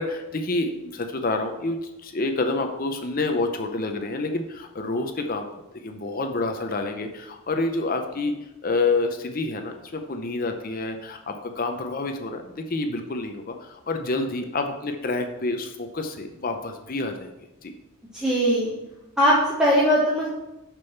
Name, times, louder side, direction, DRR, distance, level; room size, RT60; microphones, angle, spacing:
voice 1, 0.0-5.5 5.7-8.3 8.6-17.3 17.6-17.7, left 3 dB, 40° left, 5 dB, 0.6 m, -28 dB
voice 2, 18.1-18.7 19.2-20.3, equal, 5° right, -7 dB, 1.3 m, -20 dB
6.4 x 6.1 x 5.7 m, 0.96 s
head